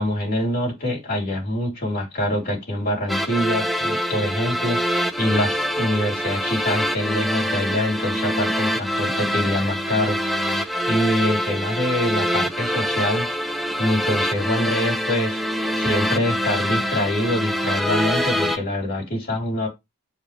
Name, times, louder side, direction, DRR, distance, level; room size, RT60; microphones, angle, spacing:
voice 1, 0.0-10.2 10.9-13.5 13.8-15.4 15.7-19.7, left 1 dB, 45° left, 4.1 m, -25 dB
sound 1, 3.1-18.6, equal, ahead, 0.9 m, -25 dB
7.7 x 5.2 x 3.5 m
head